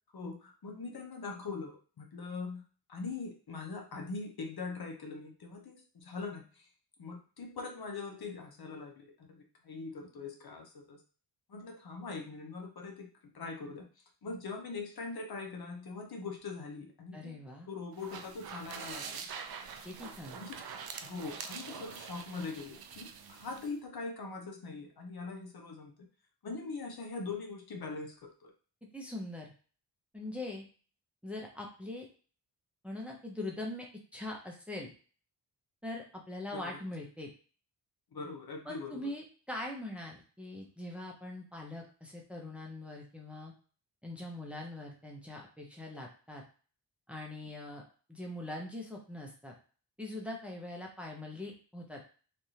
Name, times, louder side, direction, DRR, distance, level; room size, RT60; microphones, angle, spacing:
voice 1, 0.1-6.7 7.0-11.0 11.5-17.4 17.7-19.2 20.0-20.6 21.0-26.1 26.4-28.5 36.5-36.8 38.1-39.1, left 4 dB, 55° left, 2 dB, 0.8 m, -42 dB
voice 2, 17.1-17.7 19.8-20.4 28.9-29.5 30.1-30.6 31.2-32.1 32.8-34.9 35.8-37.3 38.7-43.5 44.0-46.4 47.1-47.8 48.1-49.5 50.0-52.0, left 1 dB, 5° right, -1 dB, 0.8 m, -42 dB
sound 1, 17.9-23.7, right 6 dB, 55° right, 0.5 m, -45 dB
3.3 x 2.5 x 2.8 m, 0.39 s
cardioid pair, 85°, 43 cm